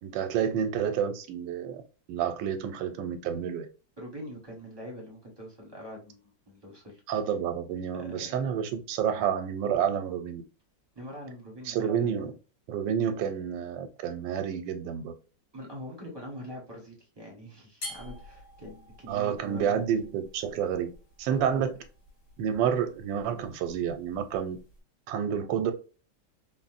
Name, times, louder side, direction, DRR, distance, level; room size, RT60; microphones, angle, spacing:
voice 1, 0.0-1.8 2.1-3.7 7.1-10.4 11.7-12.3 12.7-15.1 19.1-20.9 21.2-21.7 22.4-24.6 25.1-25.7, right 8 dB, 85° right, 1.2 m, -29 dB
voice 2, 4.0-7.0 8.0-8.4 10.9-12.3 15.5-19.8 21.3-21.6, equal, 20° right, 0.6 m, -43 dB
sound 1, 17.8-24.8, left 1 dB, 65° left, 2.0 m, -48 dB
3.8 x 2.0 x 2.4 m
omnidirectional pair, 1.9 m